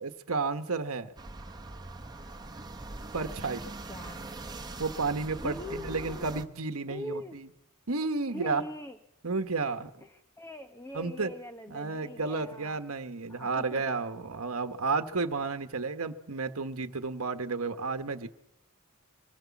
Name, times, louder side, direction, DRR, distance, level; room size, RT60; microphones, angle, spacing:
voice 1, 0.0-1.1 3.1-3.6 4.8-7.5 7.9-8.6 9.2-9.9 10.9-11.3 11.7-18.3, right 4 dB, 70° right, 8 dB, 1.3 m, -32 dB
sound 1, 1.2-6.4, right 2 dB, 20° right, 1.4 m, -42 dB
voice 2, 3.9-4.3 5.4-6.4 6.9-7.4 8.3-9.0 10.0-12.8 13.3-14.0, left 1 dB, 15° left, 7 dB, 1.1 m, -42 dB
25.0 x 19.0 x 7.2 m, 0.82 s
head